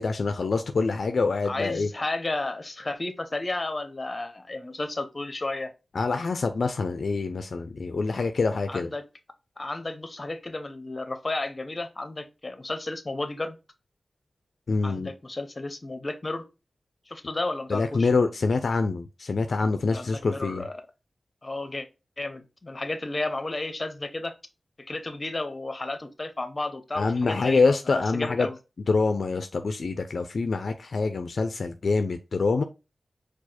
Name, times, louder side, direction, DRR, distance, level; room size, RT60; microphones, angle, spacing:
voice 1, 0.0-1.9 5.9-8.9 14.7-15.1 17.7-20.6 27.0-28.5 28.9-32.6, left 4 dB, 75° left, 0.4 m, -25 dB
voice 2, 1.4-5.7 8.7-9.1 9.6-13.6 14.8-16.4 17.1-18.1 19.9-20.8 21.4-21.9 22.2-24.3 24.8-28.6, left 2 dB, 35° left, 0.8 m, -33 dB
4.6 x 2.3 x 4.2 m
wide cardioid pair, 60°, 0 cm